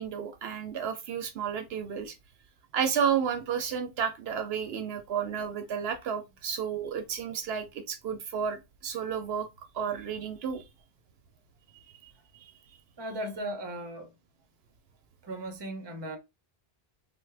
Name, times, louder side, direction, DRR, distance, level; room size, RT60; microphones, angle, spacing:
voice 1, 0.0-2.1 2.7-9.5 9.7-10.6 12.0-12.1, right 7 dB, 75° right, 0.8 m, -32 dB
voice 2, 13.0-14.1 15.2-16.2, right 1 dB, 30° right, 0.6 m, -37 dB
3.3 x 2.1 x 3.2 m
omnidirectional pair, 1.1 m